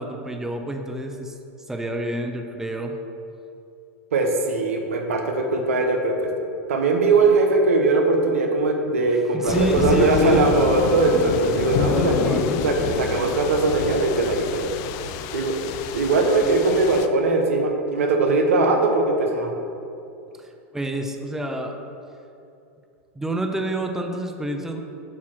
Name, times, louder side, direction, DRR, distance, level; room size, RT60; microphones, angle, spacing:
voice 1, 0.0-1.3 1.7-3.0 9.3-10.4 11.1-11.5 11.8-12.6 20.4-21.8 23.2-24.8, right 1 dB, 5° right, 4 dB, 0.6 m, -28 dB
voice 2, 4.1-6.3 6.7-14.7 15.3-15.6 15.9-19.5, right 3 dB, 85° right, 3 dB, 0.9 m, -20 dB
sound 1, 9.5-17.1, left 9 dB, 50° left, 0.4 m, -28 dB
8.6 x 2.9 x 6.0 m, 2.6 s
hypercardioid pair, 110°, 7 cm